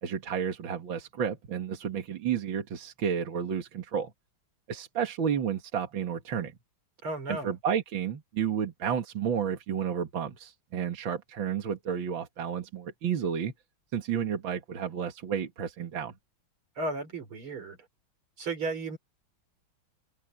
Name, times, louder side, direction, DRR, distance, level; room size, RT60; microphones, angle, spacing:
voice 1, 0.0-4.1 4.7-6.5 7.3-13.5 13.9-16.1, right 8 dB, 70° right, 2.4 m, -31 dB
voice 2, 7.0-7.5 16.8-17.8 18.4-19.0, right 2 dB, 90° right, 5.1 m, -34 dB
omnidirectional pair, 2.3 m